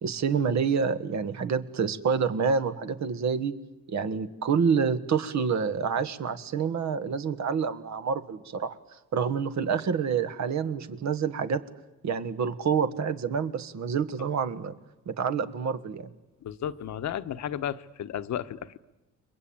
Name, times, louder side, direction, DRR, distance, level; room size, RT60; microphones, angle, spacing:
voice 1, 0.0-3.5 3.9-11.6 12.0-14.7 15.0-16.1, right 6 dB, 60° right, 1.7 m, -28 dB
voice 2, 16.4-18.8, left 10 dB, 60° left, 1.1 m, -33 dB
30.0 x 22.5 x 8.8 m
cardioid pair, 120°, 32 cm